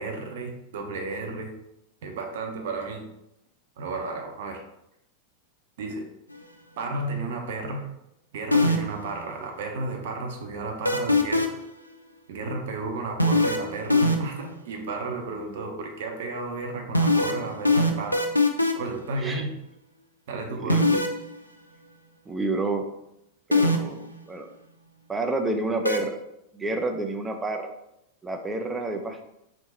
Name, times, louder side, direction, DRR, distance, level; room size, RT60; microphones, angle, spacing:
voice 1, 0.0-1.5 2.0-3.1 3.8-4.6 5.8-6.1 6.8-7.9 8.3-11.6 12.3-18.3 18.8-19.5 20.3-20.9, right 3 dB, 55° right, 3 dB, 0.8 m, -33 dB
sound 1, 8.5-9.0 10.8-11.7 13.2-14.4 16.9-18.9 20.7-21.2 23.5-24.0 25.8-26.0, left 2 dB, 85° left, 0.4 m, -20 dB
voice 2, 20.6-21.1 22.3-22.9 23.5-24.5 25.1-26.2 26.5-27.7 28.2-29.2, right 2 dB, 10° right, 4 dB, 0.5 m, -29 dB
3.7 x 3.0 x 4.3 m, 0.83 s
figure-of-eight pair, 90°, 0 cm